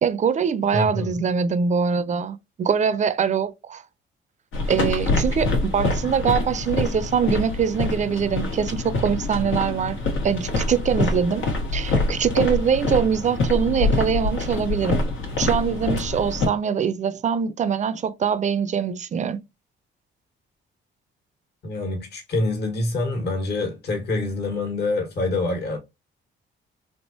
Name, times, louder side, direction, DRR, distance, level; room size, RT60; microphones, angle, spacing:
voice 1, 0.0-3.8 4.7-10.0 10.2-11.4 11.7-15.0 15.4-19.4, right 7 dB, 40° right, 0.5 m, -23 dB
voice 2, 0.7-1.3 21.6-25.8, left 2 dB, 55° left, 1.5 m, -26 dB
sound 1, 4.5-16.5, left 2 dB, 85° left, 1.4 m, -25 dB
3.5 x 2.9 x 2.7 m
cardioid pair, 90°, 20 cm